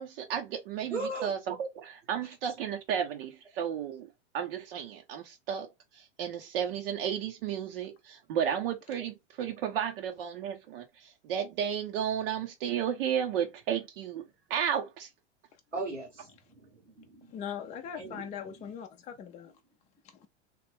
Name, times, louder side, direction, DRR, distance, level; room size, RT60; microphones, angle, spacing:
voice 1, 0.0-4.1 4.3-14.2 14.5-15.1, right 8 dB, 55° right, 0.7 m, -33 dB
voice 2, 0.9-1.3 15.7-17.4 17.9-18.6, right 2 dB, 90° right, 1.6 m, -38 dB
voice 3, 17.3-19.5, left 8 dB, 20° left, 0.5 m, -40 dB
3.1 x 2.4 x 3.3 m
figure-of-eight pair, 90°, 35 cm